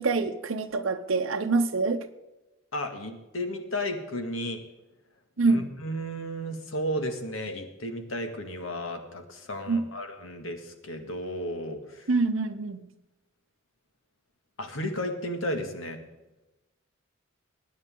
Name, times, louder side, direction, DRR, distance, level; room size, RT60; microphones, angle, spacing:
voice 1, 0.0-2.1 5.4-5.7 9.7-9.8 12.1-12.8, right 3 dB, 70° right, 0.8 m, -25 dB
voice 2, 2.7-4.6 5.4-12.1 14.6-16.0, equal, 85° left, 2.0 m, -33 dB
22.5 x 9.5 x 3.8 m
head